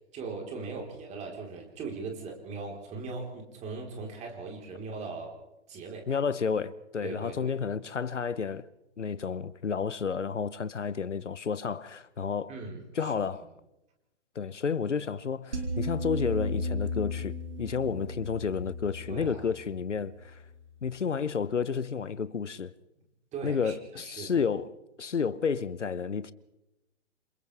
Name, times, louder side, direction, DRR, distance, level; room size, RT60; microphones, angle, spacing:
voice 1, 0.1-5.4 5.7-6.2 7.0-7.5 12.5-13.1 19.1-19.4 23.3-23.8 24.0-24.4, right 4 dB, 20° right, 4.0 m, -39 dB
voice 2, 6.1-8.7 9.0-12.5 13.0-13.5 14.3-20.4 20.8-22.7 23.4-26.3, left 6 dB, 85° left, 1.0 m, -31 dB
sound 1, 15.5-20.7, left 1 dB, 75° right, 5.5 m, -35 dB
28.0 x 27.5 x 3.4 m
figure-of-eight pair, 130°, 35 cm